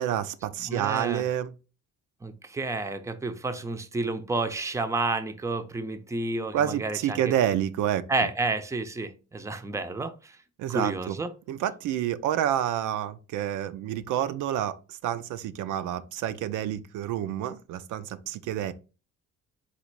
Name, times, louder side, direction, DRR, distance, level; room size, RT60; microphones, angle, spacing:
voice 1, 0.0-1.5 6.5-8.0 10.6-11.2 11.5-18.7, right 11 dB, 85° right, 0.5 m, -28 dB
voice 2, 0.6-1.3 2.2-7.3 8.1-10.4 10.7-11.3, right 3 dB, 10° right, 0.5 m, -30 dB
4.1 x 2.4 x 4.5 m
cardioid pair, 90°, 30 cm